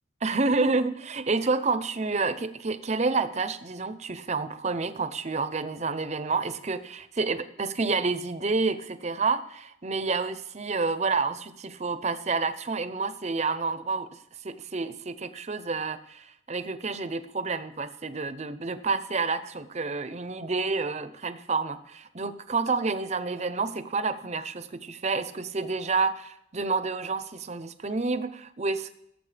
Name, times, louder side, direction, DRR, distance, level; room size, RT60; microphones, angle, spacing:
voice 1, 0.2-14.2 14.4-28.9, right 4 dB, 35° right, 12 dB, 0.7 m, -29 dB
17.5 x 7.6 x 3.4 m, 0.76 s
head